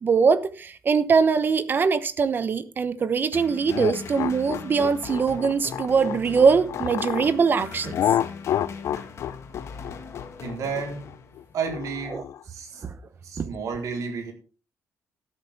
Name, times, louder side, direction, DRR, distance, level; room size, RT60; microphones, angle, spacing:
voice 1, 0.0-8.0 12.1-12.2 12.8-12.9 13.4-13.5, right 5 dB, 35° right, 13 dB, 1.0 m, -22 dB
sound 1, 3.3-11.6, left 6 dB, 50° left, 1.8 m, -40 dB
sound 2, 3.7-7.3 7.9-12.4, left 10 dB, 70° left, 0.6 m, -29 dB
voice 2, 10.4-11.0 11.5-12.2 12.4-12.8 13.2-14.3, right 5 dB, 70° right, 2 dB, 4.2 m, -31 dB
13.5 x 11.5 x 3.6 m, 0.37 s
wide cardioid pair, 170°, 6 cm